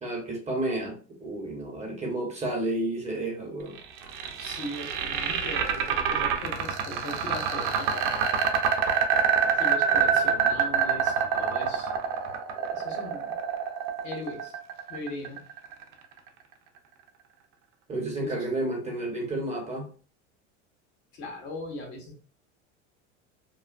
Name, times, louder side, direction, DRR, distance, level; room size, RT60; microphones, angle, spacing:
voice 1, 0.0-3.8 17.9-19.9, right 1 dB, 20° right, 1.0 m, -31 dB
sound 1, 3.8-15.8, right 7 dB, 60° right, 0.7 m, -26 dB
voice 2, 4.4-8.1 9.5-11.9 12.7-13.3 14.0-14.6 14.9-15.4 18.2-18.4 21.1-22.2, left 2 dB, 70° left, 1.4 m, -39 dB
3.0 x 2.2 x 2.4 m
hypercardioid pair, 100°, 35 cm